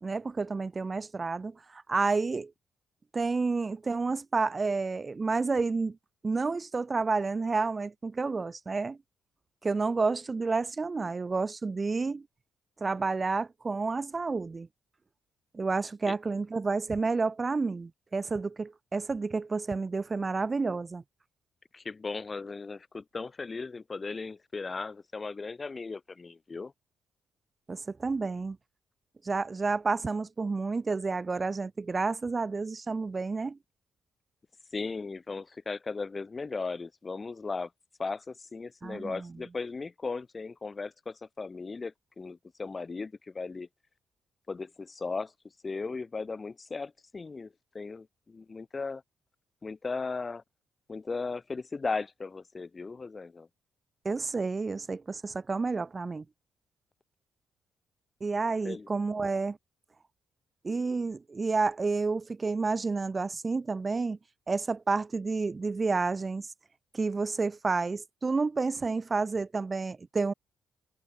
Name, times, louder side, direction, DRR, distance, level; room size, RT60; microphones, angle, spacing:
voice 1, 0.0-2.5 3.1-6.0 6.2-9.0 9.6-12.2 12.8-14.7 15.5-21.0 27.7-28.6 29.2-33.6 38.8-39.3 54.0-56.2 58.2-59.6 60.6-64.2 64.5-66.5 66.9-70.3, right 4 dB, 30° right, 2.3 m, -30 dB
voice 2, 21.7-26.7 34.7-37.7 38.0-43.7 44.5-45.3 45.6-49.0 49.6-50.4 50.9-53.5 58.6-58.9, left 4 dB, 30° left, 5.3 m, -37 dB
cardioid pair, 90°, 0 cm